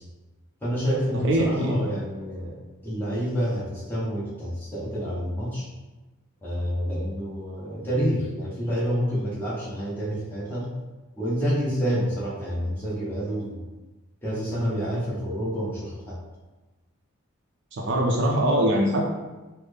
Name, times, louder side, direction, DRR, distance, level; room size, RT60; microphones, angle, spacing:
voice 1, 0.6-5.7 6.4-10.7 11.2-13.6 14.2-16.2, equal, 10° left, -9 dB, 1.0 m, -28 dB
voice 2, 1.2-1.8 17.7-19.1, right 1 dB, 55° right, 0 dB, 0.5 m, -22 dB
4.0 x 2.0 x 3.3 m, 1.2 s
head